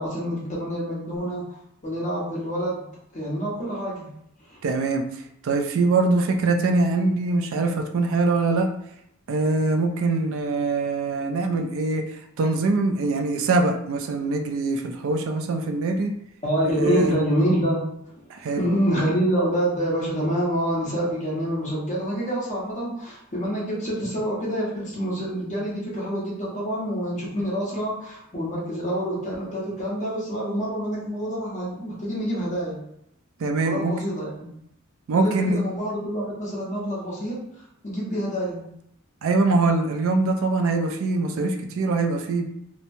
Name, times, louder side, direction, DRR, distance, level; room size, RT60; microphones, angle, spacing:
voice 1, 0.0-1.6 1.8-2.9 3.1-4.1 4.5-4.6 16.4-17.8 18.6-32.8 33.6-34.5 35.1-37.4 37.8-38.7, equal, 35° left, -6 dB, 1.0 m, -27 dB
voice 2, 4.6-8.7 9.3-16.1 16.7-17.1 18.3-18.7 33.4-33.9 35.1-35.6 39.2-42.5, right 3 dB, 65° right, 4 dB, 0.4 m, -23 dB
2.9 x 2.1 x 2.6 m, 0.75 s
head